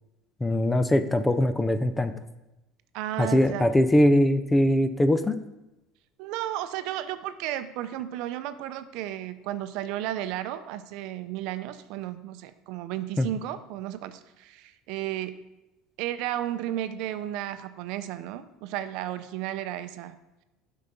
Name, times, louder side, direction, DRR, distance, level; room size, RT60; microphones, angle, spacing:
voice 1, 0.4-2.2 3.2-5.4 13.2-13.3, left 1 dB, 10° left, 11 dB, 0.5 m, -22 dB
voice 2, 2.9-3.7 6.2-15.4 16.0-20.2, right 12 dB, 65° right, 11 dB, 0.6 m, -33 dB
8.0 x 5.7 x 5.2 m, 0.97 s
cardioid pair, 130°, 0 cm